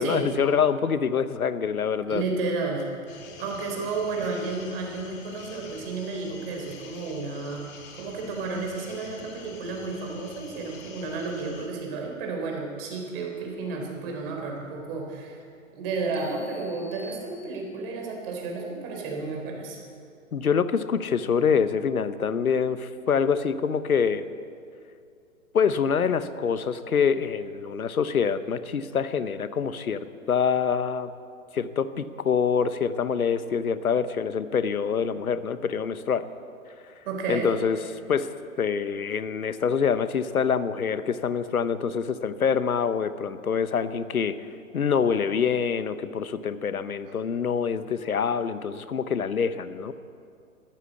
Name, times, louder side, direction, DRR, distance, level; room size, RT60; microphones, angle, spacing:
voice 1, 0.0-2.2 20.3-24.2 25.5-31.1 31.5-36.3 37.3-37.8 38.1-38.3 38.6-44.4 44.7-49.9, left 6 dB, 90° left, 14 dB, 0.9 m, -25 dB
voice 2, 2.1-2.9 3.1-7.6 7.9-15.4 15.7-19.8 37.0-37.5, right 3 dB, 40° right, 1 dB, 3.8 m, -32 dB
sound 1, 3.1-11.7, left 5 dB, 25° left, 1.9 m, -47 dB
sound 2, 16.1-18.0, equal, 10° right, 0.4 m, -50 dB
13.5 x 12.0 x 8.2 m, 2.4 s
hypercardioid pair, 130°, 42 cm